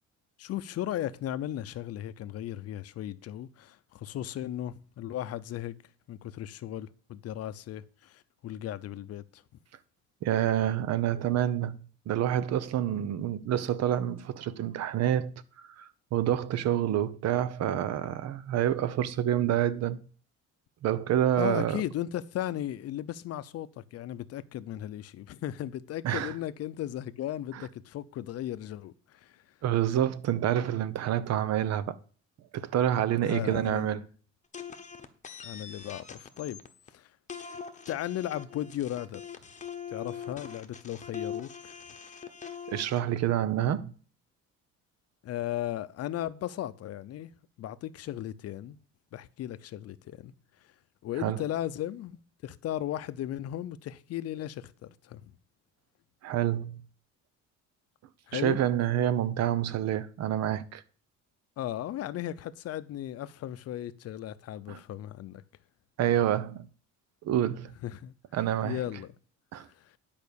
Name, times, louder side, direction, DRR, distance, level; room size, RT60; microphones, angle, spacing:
voice 1, 0.4-5.8 6.1-9.4 21.4-29.4 33.2-34.0 35.4-36.6 36.9-37.1 37.9-39.2 39.9-41.8 45.2-47.3 47.6-48.8 49.1-50.3 51.0-55.3 58.3-58.6 61.6-65.4 67.8-68.1 68.6-69.1 69.8-69.9, left 12 dB, 55° left, 0.6 m, -36 dB
voice 2, 10.2-11.8 12.1-15.3 15.8-15.9 16.1-20.0 20.8-21.8 26.0-26.3 27.5-27.7 29.6-32.0 32.5-34.1 42.7-43.9 51.2-51.4 56.2-56.8 58.3-60.8 64.7-64.8 66.0-66.6 67.2-67.7 68.3-68.8 69.5-69.7, right 11 dB, 60° right, 0.8 m, -27 dB
sound 1, 34.5-36.9 37.3-43.0, left 7 dB, 25° left, 1.0 m, -42 dB
10.5 x 5.2 x 6.9 m
cardioid pair, 135°, 29 cm